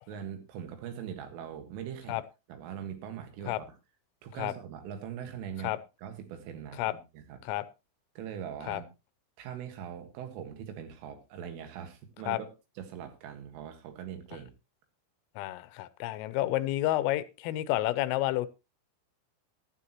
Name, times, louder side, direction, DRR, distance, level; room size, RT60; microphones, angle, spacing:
voice 1, 0.1-2.2 2.5-3.8 4.2-5.7 6.0-7.4 8.2-8.9 9.4-12.5 12.8-14.5, right 9 dB, 80° right, 4.2 m, -41 dB
voice 2, 15.4-18.5, left 15 dB, 85° left, 3.4 m, -30 dB
14.0 x 12.0 x 3.0 m
omnidirectional pair, 5.8 m